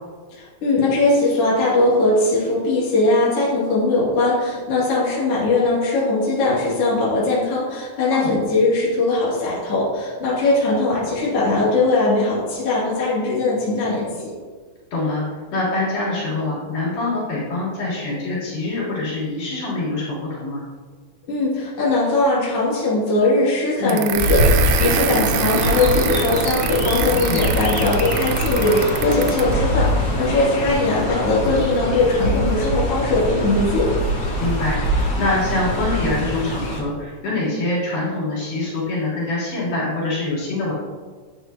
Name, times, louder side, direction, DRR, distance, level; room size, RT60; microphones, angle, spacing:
voice 1, 0.4-14.3 21.3-33.9, left 2 dB, 45° left, -7 dB, 3.3 m, -20 dB
voice 2, 14.9-20.6 23.8-24.0 27.2-27.5 34.4-40.7, left 2 dB, 75° left, -7 dB, 5.0 m, -25 dB
sound 1, 23.9-29.5, right 9 dB, 80° right, 2.0 m, -26 dB
Chirp tweet, 24.1-36.8, equal, 30° left, 2.1 m, -23 dB
11.5 x 9.5 x 2.9 m, 1.4 s
omnidirectional pair, 3.7 m